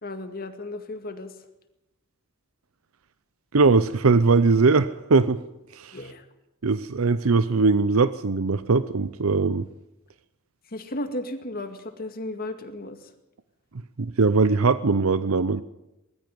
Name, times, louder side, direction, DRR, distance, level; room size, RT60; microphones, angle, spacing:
voice 1, 0.0-1.3 5.9-6.3 10.7-13.1, left 1 dB, 45° left, 7 dB, 2.2 m, -34 dB
voice 2, 3.5-5.4 5.7-6.0 6.6-9.6 14.0-15.6, right 4 dB, 80° right, 14 dB, 0.7 m, -20 dB
21.5 x 13.5 x 9.5 m, 0.93 s
head